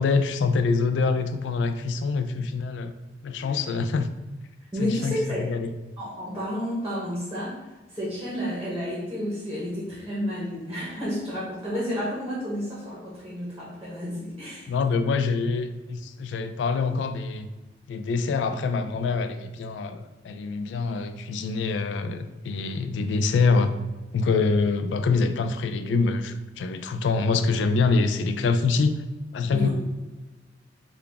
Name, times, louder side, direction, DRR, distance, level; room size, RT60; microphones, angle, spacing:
voice 1, 0.0-2.9 3.2-4.1 4.8-5.7 14.7-17.5 17.9-23.7 24.1-29.0 29.3-29.7, left 4 dB, 85° left, 9 dB, 0.3 m, -25 dB
voice 2, 4.7-5.5 6.0-14.7 29.5-29.7, equal, 15° right, -6 dB, 0.9 m, -31 dB
3.8 x 2.3 x 3.4 m, 1.1 s
head